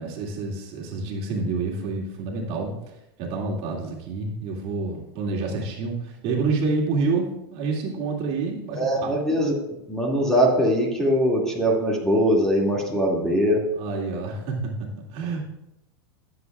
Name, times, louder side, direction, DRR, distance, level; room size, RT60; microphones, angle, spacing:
voice 1, 0.0-2.7 3.2-9.1 13.8-14.6 15.1-15.4, right 4 dB, 45° right, -2 dB, 2.3 m, -28 dB
voice 2, 8.7-9.5 9.9-13.6, equal, 5° left, -2 dB, 2.2 m, -21 dB
17.5 x 7.8 x 2.4 m, 0.88 s
hypercardioid pair, 120°, 14 cm